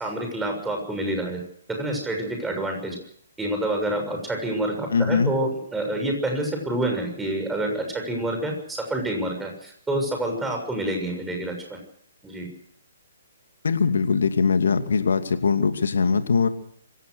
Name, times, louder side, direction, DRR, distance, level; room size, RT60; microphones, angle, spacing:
voice 1, 0.0-1.4 1.7-3.0 3.4-11.8 12.2-12.5, right 1 dB, 5° right, 3 dB, 6.6 m, -28 dB
voice 2, 4.9-5.4 13.6-16.5, left 5 dB, 65° left, 8 dB, 2.5 m, -21 dB
25.5 x 16.5 x 6.5 m, 0.66 s
figure-of-eight pair, 130°, 0 cm